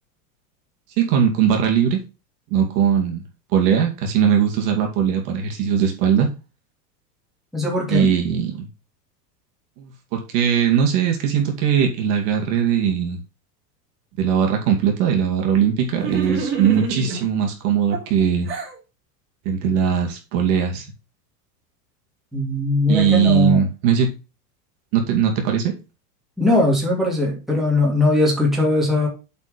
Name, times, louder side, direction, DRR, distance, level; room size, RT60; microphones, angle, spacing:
voice 1, 1.0-2.0 2.5-3.2 3.5-6.3 7.9-8.7 9.8-13.2 14.2-18.5 19.5-20.9 22.9-24.1 24.9-25.7, right 8 dB, 45° right, 2 dB, 2.3 m, -20 dB
voice 2, 7.5-8.1 22.3-23.7 26.4-29.1, left 2 dB, ahead, -3 dB, 2.5 m, -20 dB
sound 1, 15.9-17.3 17.9-18.8, right 5 dB, 25° right, 3.7 m, -27 dB
8.1 x 4.4 x 5.2 m, 0.29 s
supercardioid pair, 160°, 48 cm